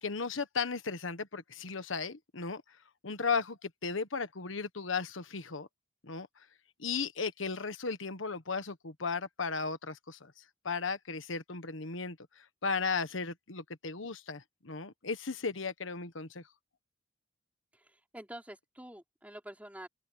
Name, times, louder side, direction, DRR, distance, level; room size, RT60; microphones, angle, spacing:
voice 1, 0.0-2.6 3.0-5.7 6.0-6.3 6.8-10.3 10.6-16.4, left 5 dB, 90° left, 1.3 m, -35 dB
voice 2, 17.7-19.9, right 1 dB, 10° right, 4.7 m, -47 dB
head